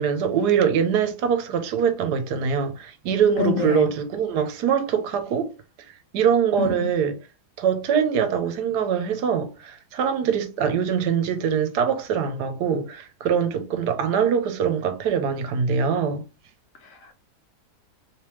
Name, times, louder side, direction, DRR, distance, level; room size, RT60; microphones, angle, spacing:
voice 1, 0.0-5.5 5.9-7.2 7.6-16.2, right 7 dB, 85° right, 1.3 m, -23 dB
voice 2, 3.4-3.9 6.6-6.9 16.8-17.2, left 6 dB, 65° left, 0.9 m, -27 dB
3.3 x 3.0 x 3.0 m
omnidirectional pair, 1.7 m